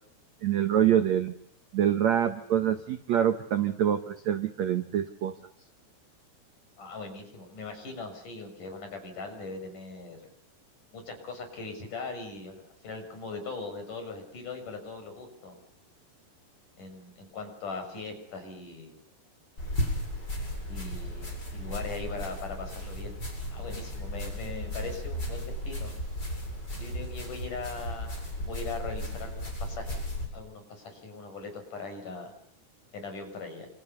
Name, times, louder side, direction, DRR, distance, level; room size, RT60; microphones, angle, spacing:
voice 1, 0.4-1.3 1.7-5.3, right 10 dB, 70° right, 9 dB, 1.7 m, -25 dB
voice 2, 6.8-10.2 10.9-15.6 16.8-18.9 20.7-23.2 23.5-25.9 26.7-28.2 28.4-30.0 30.3-32.3 32.9-33.7, left 3 dB, 45° left, 6 dB, 8.2 m, -40 dB
sound 1, 19.6-30.3, equal, 20° left, 8.2 m, -35 dB
29.0 x 28.5 x 7.0 m, 0.66 s
omnidirectional pair, 5.1 m